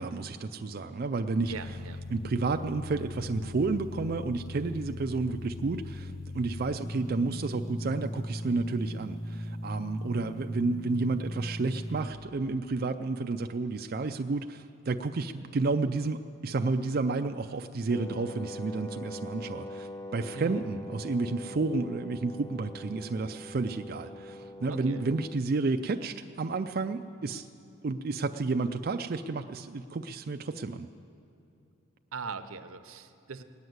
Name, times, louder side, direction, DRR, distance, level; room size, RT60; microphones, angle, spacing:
voice 1, 0.0-1.5 2.1-27.5 27.8-30.9, right 3 dB, 45° right, 6 dB, 0.4 m, -31 dB
sound 1, 1.4-12.1, left 1 dB, 45° left, 0.9 m, -39 dB
voice 2, 1.5-2.0 20.3-20.9 24.7-25.0 32.1-33.4, right 4 dB, 85° right, 10 dB, 0.8 m, -40 dB
Wind instrument woodwind instrument, 17.9-25.5, left 1 dB, 15° left, 0.5 m, -43 dB
19.0 x 9.3 x 7.9 m, 2.8 s
head